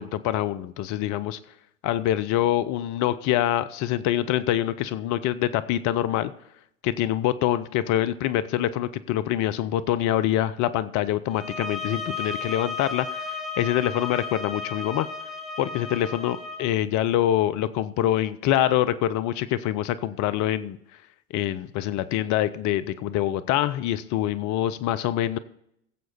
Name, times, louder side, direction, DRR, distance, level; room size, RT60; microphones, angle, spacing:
voice 1, 0.0-1.4 1.8-6.3 6.8-15.1 15.6-20.8 21.3-25.4, left 12 dB, 50° left, 14 dB, 0.7 m, -25 dB
sound 1, 11.3-16.6, left 4 dB, ahead, 2.0 m, -34 dB
16.0 x 7.7 x 4.1 m, 0.74 s
hypercardioid pair, 75°, 38 cm